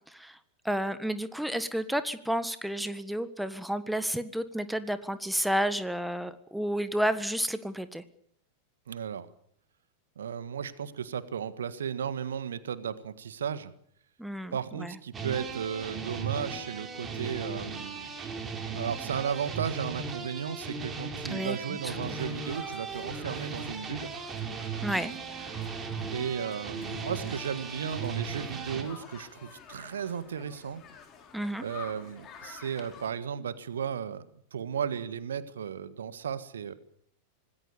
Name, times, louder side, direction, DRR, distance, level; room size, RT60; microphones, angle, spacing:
voice 1, 0.6-8.0 14.2-14.9 21.3-21.8 22.0-22.1 24.8-25.1 31.3-31.6, equal, ahead, 12 dB, 1.5 m, -31 dB
voice 2, 8.9-9.3 10.1-13.7 14.5-18.1 18.7-24.1 26.1-30.8 31.6-36.7, right 7 dB, 65° right, 14 dB, 1.6 m, -35 dB
sound 1, 15.1-28.8, right 5 dB, 20° right, 4.8 m, -37 dB
sound 2, 21.8-33.1, left 6 dB, 30° left, 5.0 m, -50 dB
26.5 x 19.5 x 6.9 m, 0.66 s
figure-of-eight pair, 90°, 0 cm